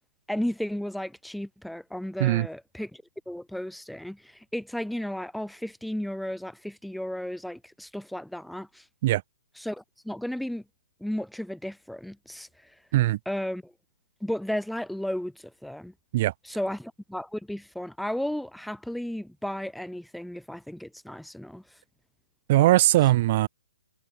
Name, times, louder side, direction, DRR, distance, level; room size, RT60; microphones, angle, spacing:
voice 1, 0.3-8.8 9.6-10.6 11.0-12.7 13.3-13.7 14.2-15.9 16.5-21.6, left 1 dB, ahead, 6.2 m, -34 dB
voice 2, 22.5-23.5, right 16 dB, 30° right, 2.3 m, -20 dB
hypercardioid pair, 175°, 0 cm